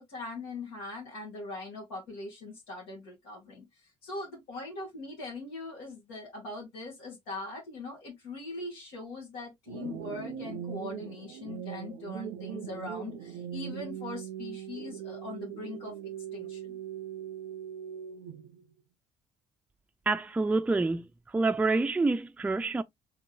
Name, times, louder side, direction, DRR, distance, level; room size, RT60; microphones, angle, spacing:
voice 1, 0.0-16.8, left 2 dB, 85° left, 1.7 m, -41 dB
sound 1, 9.7-18.6, right 9 dB, 85° right, 0.5 m, -40 dB
voice 2, 20.1-21.1 21.3-22.8, right 3 dB, 10° right, 0.3 m, -27 dB
3.7 x 3.5 x 2.8 m
hypercardioid pair, 60°, 15 cm